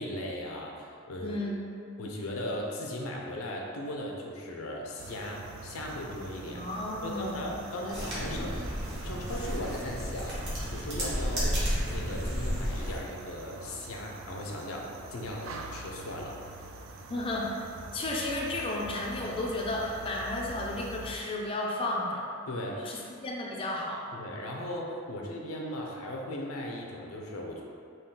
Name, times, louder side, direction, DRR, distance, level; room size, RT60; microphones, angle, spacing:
voice 1, 0.0-1.4 2.0-6.6 7.0-8.6 9.0-10.4 10.7-16.4 22.5-23.0 24.1-27.6, left 1 dB, 85° left, -1 dB, 0.6 m, -37 dB
voice 2, 1.2-1.6 6.5-7.6 17.1-17.6 17.9-22.3 22.8-24.1, left 1 dB, 25° left, -3 dB, 0.3 m, -33 dB
sound 1, 5.0-21.2, right 2 dB, 70° right, 0.3 m, -45 dB
sound 2, 7.9-13.0, equal, 55° right, 1.2 m, -32 dB
3.7 x 2.3 x 3.8 m, 2.4 s
head